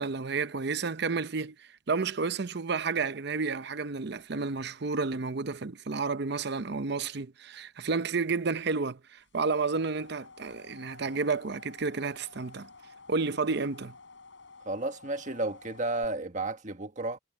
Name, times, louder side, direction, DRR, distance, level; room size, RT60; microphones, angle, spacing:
voice 1, 0.0-12.7 13.1-13.9, right 4 dB, 60° right, 0.7 m, -31 dB
sound 1, 9.4-16.1, left 4 dB, 75° left, 5.1 m, -52 dB
voice 2, 14.6-17.2, right 2 dB, 40° right, 1.5 m, -32 dB
head